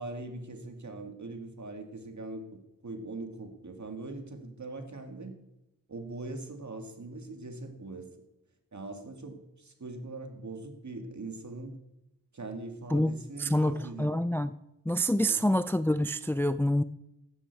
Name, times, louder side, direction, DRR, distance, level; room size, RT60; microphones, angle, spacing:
voice 1, 0.0-5.3 5.9-8.1 8.7-11.8 12.3-14.1 15.2-15.4, right 2 dB, 55° right, 5 dB, 2.2 m, -41 dB
voice 2, 13.4-14.5 14.9-16.8, equal, 5° left, 13 dB, 0.4 m, -27 dB
15.5 x 12.5 x 4.7 m, 0.91 s
wide cardioid pair, 70°, 35 cm